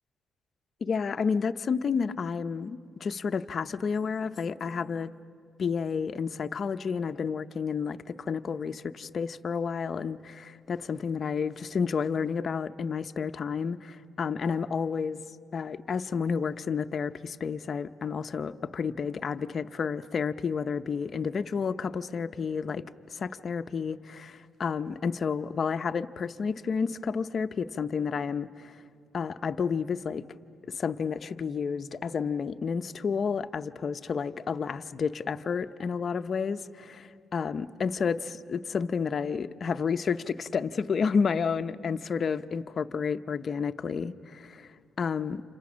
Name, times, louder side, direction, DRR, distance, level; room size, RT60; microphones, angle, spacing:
voice 1, 0.8-5.1 5.6-15.2 15.5-22.8 23.1-28.8 29.1-30.3 30.7-45.4, left 6 dB, 45° left, 0.7 m, -31 dB
30.0 x 27.0 x 6.3 m
cardioid pair, 90°, 0 cm